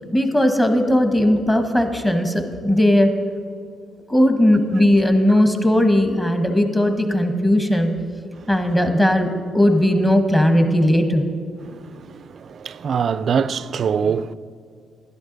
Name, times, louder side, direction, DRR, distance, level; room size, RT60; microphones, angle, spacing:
voice 1, 0.1-3.1 4.1-7.9 8.5-9.3 9.5-11.2, left 1 dB, 15° left, 1.2 m, -17 dB
voice 2, 11.6-14.3, right 6 dB, 55° right, 0.3 m, -24 dB
12.5 x 10.5 x 4.0 m
cardioid pair, 90°, 0 cm